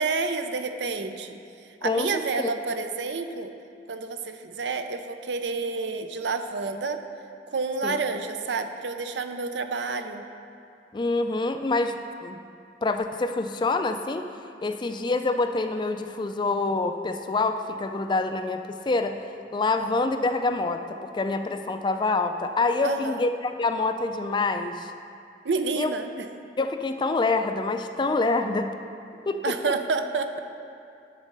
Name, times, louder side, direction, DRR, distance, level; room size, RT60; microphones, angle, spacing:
voice 1, 0.0-1.4 1.8-3.5 3.9-7.0 7.5-10.2 22.8-23.2 25.4-26.1 29.4-30.4, right 4 dB, 85° right, 7 dB, 0.6 m, -29 dB
voice 2, 10.9-12.4 12.8-14.3 14.6-24.9 25.8-25.9 26.6-28.7 29.3-29.6, left 3 dB, 25° left, 7 dB, 0.3 m, -26 dB
10.5 x 4.1 x 6.6 m, 2.5 s
head